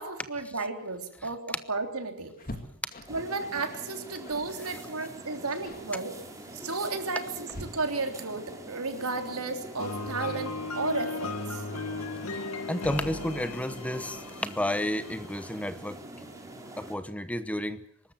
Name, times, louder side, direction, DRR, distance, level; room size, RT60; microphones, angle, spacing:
voice 1, 0.0-1.4 1.7-2.3 3.1-6.1 6.5-11.6, right 3 dB, 80° right, 5 dB, 3.4 m, -33 dB
sound 1, 0.7-3.4 4.2-4.6 4.9-5.1 5.6-5.9 6.8-8.2 10.0-10.1 10.5-10.6 11.7-12.2 12.5-12.6 12.9-13.1, left 1 dB, 40° left, 2.4 m, -46 dB
sound 2, 3.1-17.0, right 1 dB, 15° right, 3.6 m, -45 dB
sound 3, 9.8-15.6, left 3 dB, 85° left, 1.9 m, -37 dB
voice 2, 12.7-16.0 16.8-17.8, left 1 dB, 5° left, 12 dB, 0.9 m, -31 dB
24.5 x 13.5 x 9.3 m, 0.70 s
head